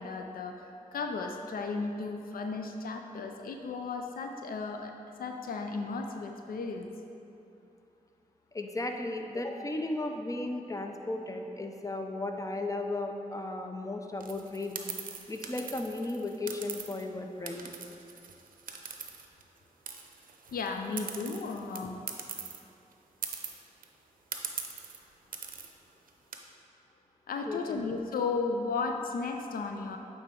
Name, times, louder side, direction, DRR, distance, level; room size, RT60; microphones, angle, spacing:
voice 1, 0.0-4.9 5.2-6.9 20.5-22.0 27.3-30.0, left 4 dB, 85° left, 4 dB, 0.4 m, -34 dB
voice 2, 8.5-14.8 15.3-17.7 27.5-27.9, left 2 dB, 20° left, 4 dB, 0.6 m, -35 dB
sound 1, 14.2-17.1 17.5-19.6 19.9-22.6 22.9-23.0 23.2-23.8 24.3-25.0 25.3-25.7 26.1-26.4, right 6 dB, 70° right, 0.6 m, -41 dB
8.7 x 3.9 x 3.8 m, 2.7 s
cardioid pair, 50°, 15 cm